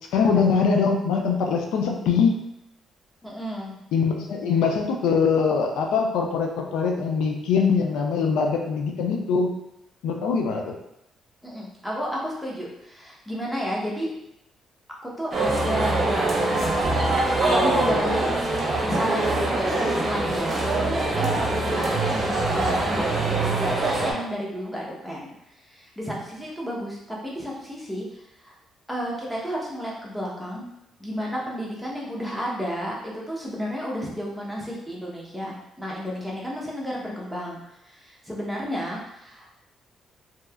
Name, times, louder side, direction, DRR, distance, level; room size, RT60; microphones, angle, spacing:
voice 1, 0.1-2.4 3.9-9.5 10.0-10.7, left 5 dB, 90° left, 2 dB, 0.4 m, -22 dB
voice 2, 3.2-3.8 11.4-14.1 15.0-16.6 17.4-18.5 18.8-28.6 28.9-30.6 31.0-39.5, equal, ahead, -4 dB, 0.9 m, -32 dB
sound 1, 15.3-24.1, right 2 dB, 40° right, 0.8 m, -23 dB
3.0 x 2.8 x 2.4 m, 0.82 s
cardioid pair, 90°, 0 cm